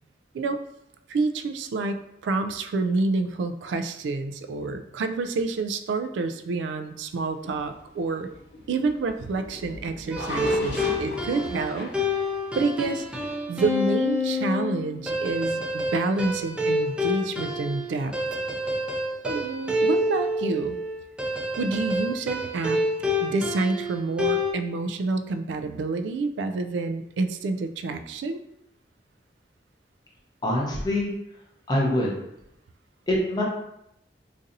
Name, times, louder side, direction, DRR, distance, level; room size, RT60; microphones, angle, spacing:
voice 1, 1.1-8.3 8.7-11.9 12.5-13.1 13.5-18.2 19.2-20.8 21.6-22.8 23.2-28.4, right 3 dB, 90° right, 9 dB, 0.3 m, -28 dB
sound 1, 7.4-13.3, left 1 dB, 70° left, 0.8 m, -37 dB
sound 2, 10.1-24.5, left 1 dB, 5° right, 0.4 m, -28 dB
voice 2, 30.4-31.1 31.7-32.1 33.1-33.4, left 1 dB, 25° left, -3 dB, 0.7 m, -24 dB
4.0 x 2.6 x 2.5 m, 0.81 s
head